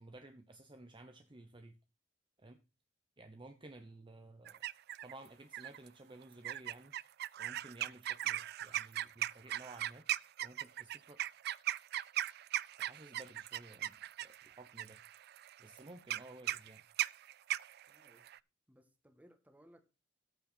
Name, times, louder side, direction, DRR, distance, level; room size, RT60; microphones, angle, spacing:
voice 1, 0.0-1.8 2.4-2.6 3.2-4.6 5.0-6.9 7.4-10.1 10.4-11.2 12.8-15.0 15.6-16.8, right 2 dB, 25° right, 0.9 m, -54 dB
sound 1, 4.5-5.1 5.5-5.9 6.4-18.4, right 13 dB, 55° right, 0.4 m, -38 dB
voice 2, 17.9-18.3 18.7-19.8, equal, 10° right, 1.7 m, -63 dB
14.0 x 5.5 x 4.3 m
head